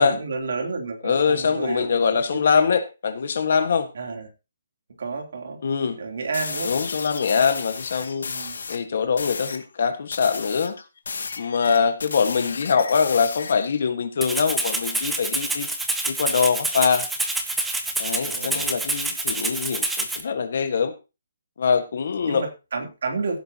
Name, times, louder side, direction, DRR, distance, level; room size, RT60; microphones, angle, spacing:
voice 1, 0.0-2.6 3.9-4.3 5.0-5.6 6.0-6.7 8.2-8.5 12.3-12.5 18.3-18.7 22.3-23.4, right 4 dB, 50° right, 3 dB, 3.3 m, -31 dB
voice 2, 1.0-3.9 5.6-6.0 6.6-8.3 8.7-10.7 11.4-15.7 16.1-17.0 18.0-20.9 21.6-22.4, left 6 dB, 45° left, 8 dB, 1.6 m, -23 dB
sound 1, 6.3-8.8 9.2-9.6 10.1-13.8, left 5 dB, 70° left, 2.2 m, -33 dB
Rattle (instrument), 14.2-20.2, right 2 dB, 5° right, 0.8 m, -27 dB
16.5 x 9.3 x 2.9 m, 0.29 s
hypercardioid pair, 180°, 0 cm